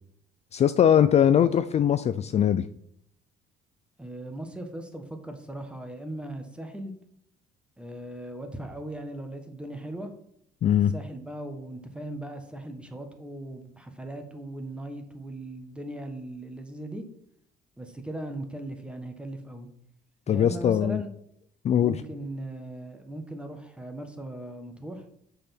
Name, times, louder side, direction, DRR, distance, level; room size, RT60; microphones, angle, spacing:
voice 1, 0.5-2.7 10.6-10.9 20.3-21.0 21.6-21.9, left 9 dB, 40° left, 12 dB, 0.4 m, -21 dB
voice 2, 4.0-6.9 7.8-10.1 10.9-17.0 17.8-19.7 20.3-21.1 21.8-25.0, right 1 dB, 5° right, 5 dB, 1.5 m, -38 dB
6.7 x 5.8 x 6.0 m, 0.69 s
cardioid pair, 110°, 17 cm